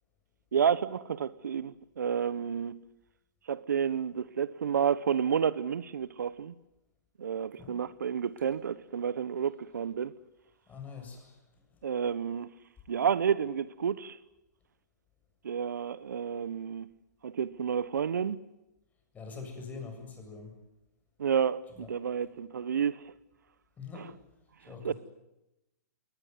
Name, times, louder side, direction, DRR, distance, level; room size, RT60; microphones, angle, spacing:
voice 1, 0.5-2.8 3.5-6.5 7.2-10.1 11.8-12.5 12.9-14.2 15.4-16.9 17.2-18.4 21.2-23.0 23.9-24.1 24.8-24.9, right 7 dB, 80° right, 1.1 m, -30 dB
voice 2, 10.7-11.4 19.1-20.5 21.8-21.9 23.8-24.1 24.7-24.9, left 5 dB, 15° left, 7.6 m, -43 dB
22.5 x 19.5 x 9.7 m
hypercardioid pair, 135°, 9 cm